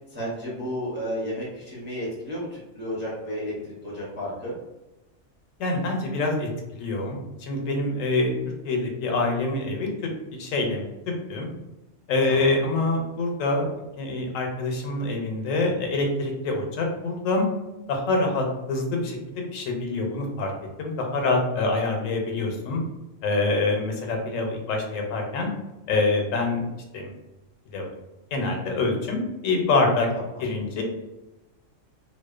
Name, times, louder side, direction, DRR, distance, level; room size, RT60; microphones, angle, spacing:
voice 1, 0.1-4.6 12.3-12.5 22.2-22.5, equal, 15° right, -6 dB, 0.4 m, -32 dB
voice 2, 5.6-8.3 8.6-10.9 11.3-11.5 12.1-13.7 14.0-17.5 17.9-20.5 20.8-22.8 23.2-25.5 25.9-26.6 26.9-27.1 27.7-27.9 28.3-30.1 30.4-30.8, left 2 dB, 85° left, 2 dB, 1.0 m, -25 dB
2.6 x 2.0 x 2.3 m, 1.0 s
omnidirectional pair, 1.3 m